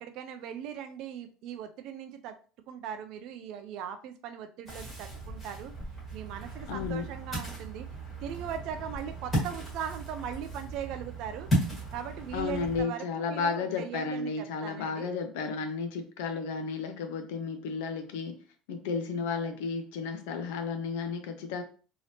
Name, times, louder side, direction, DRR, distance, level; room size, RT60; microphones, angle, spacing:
voice 1, 0.0-2.4 2.7-5.7 6.1-7.9 8.2-11.5 11.9-15.1, right 8 dB, 50° right, 0.3 m, -39 dB
Ocean, 4.7-12.8, right 1 dB, 10° left, 1.5 m, -35 dB
voice 2, 6.7-7.1 12.3-18.3 18.7-21.6, left 5 dB, 80° left, 0.7 m, -33 dB
3.3 x 2.8 x 2.7 m
cardioid pair, 170°, 0 cm